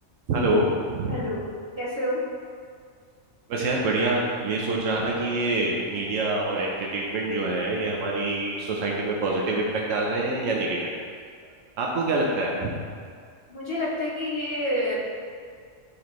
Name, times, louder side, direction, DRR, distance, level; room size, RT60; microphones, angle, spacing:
voice 1, 0.3-1.2 3.5-10.8 11.8-12.7, right 2 dB, 85° right, -2 dB, 1.2 m, -26 dB
voice 2, 1.1-1.5 1.8-2.2 13.5-14.9, left 1 dB, 20° right, -8 dB, 1.7 m, -28 dB
9.9 x 4.3 x 3.1 m, 2.1 s
omnidirectional pair, 1.3 m